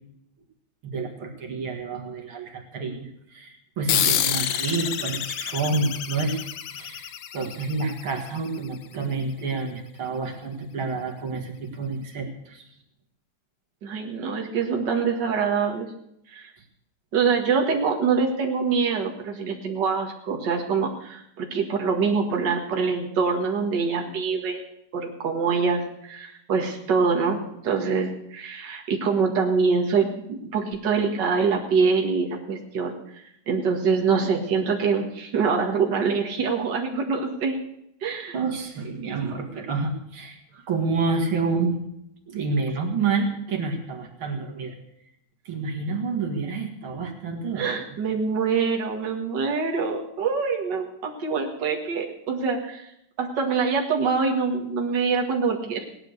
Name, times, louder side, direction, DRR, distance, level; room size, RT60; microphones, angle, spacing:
voice 1, 0.9-12.7 38.3-41.8 42.3-44.8 45.5-47.7, right 4 dB, 80° right, 2 dB, 2.8 m, -29 dB
sound 1, 3.9-8.8, left 10 dB, 70° left, 1.5 m, -28 dB
voice 2, 13.8-15.9 16.3-16.5 17.1-37.6 38.0-38.4 47.6-52.9 53.2-55.9, right 5 dB, 60° right, 0 dB, 2.5 m, -25 dB
18.0 x 10.5 x 6.6 m, 0.78 s
omnidirectional pair, 2.3 m